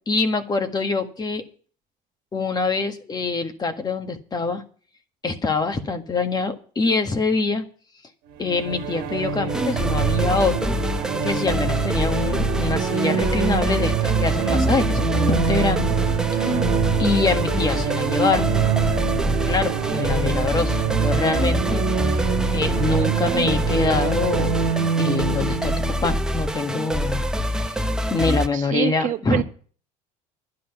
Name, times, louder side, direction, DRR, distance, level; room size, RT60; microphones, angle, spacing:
voice 1, 0.1-1.4 2.3-4.6 5.2-7.6 8.4-10.7 11.2-15.9 16.3-16.6 17.0-18.5 19.5-22.2 22.5-24.6 25.0-27.2 27.5-29.4, left 4 dB, 25° left, 7 dB, 1.6 m, -25 dB
sound 1, 8.4-27.0, right 8 dB, 75° right, 1.5 m, -25 dB
sound 2, 9.5-28.5, equal, 5° right, 0.9 m, -25 dB
voice 2, 28.5-29.4, right 11 dB, 55° right, 6 dB, 1.2 m, -25 dB
11.0 x 10.5 x 5.9 m, 0.44 s
supercardioid pair, 105°, 16 cm